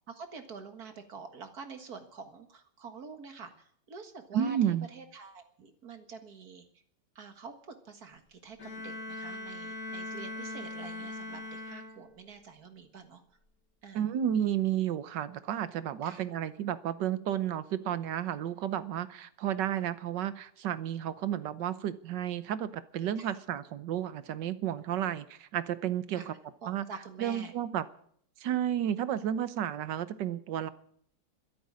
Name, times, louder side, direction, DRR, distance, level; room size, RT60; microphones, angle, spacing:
voice 1, 0.1-6.7 7.2-13.2 13.8-14.0 16.0-16.3 23.2-23.4 25.0-25.1 26.1-26.3 26.6-27.5, right 5 dB, 55° right, 7 dB, 2.1 m, -47 dB
voice 2, 4.3-4.9 13.9-26.3 26.7-26.8 27.2-27.8 28.4-30.7, right 10 dB, 70° right, 14 dB, 1.5 m, -32 dB
Bowed string instrument, 8.6-12.4, left 2 dB, 50° left, 3.3 m, -41 dB
13.0 x 11.5 x 9.5 m, 0.64 s
omnidirectional pair, 2.0 m